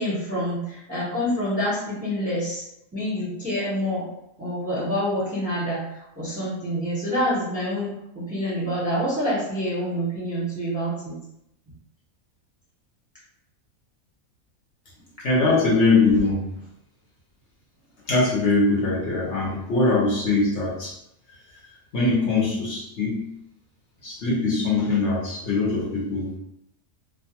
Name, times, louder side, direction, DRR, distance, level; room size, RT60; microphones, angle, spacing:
voice 1, 0.0-2.6 2.9-4.1 4.4-11.1, equal, 15° right, -9 dB, 0.7 m, -27 dB
voice 2, 15.2-16.4 18.1-20.9 21.9-23.3 24.0-26.3, left 3 dB, 60° left, -5 dB, 1.0 m, -22 dB
2.5 x 2.3 x 2.8 m, 0.81 s
omnidirectional pair, 1.5 m